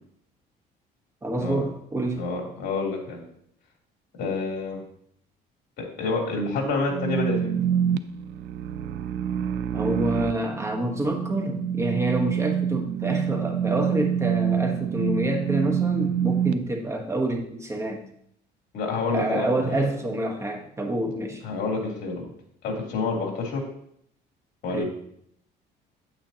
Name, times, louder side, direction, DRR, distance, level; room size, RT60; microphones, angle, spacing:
voice 1, 1.2-2.2 9.7-18.0 19.1-21.4 24.7-24.8, right 1 dB, 15° right, 2 dB, 1.2 m, -27 dB
voice 2, 2.1-3.2 4.2-4.8 5.8-7.5 18.7-19.8 21.4-22.3 22.6-23.6 24.6-24.8, left 3 dB, 60° left, -1 dB, 3.3 m, -28 dB
sound 1, 6.9-16.5, right 8 dB, 90° right, 0.5 m, -26 dB
9.1 x 8.8 x 2.9 m, 0.69 s
cardioid pair, 135°, 18 cm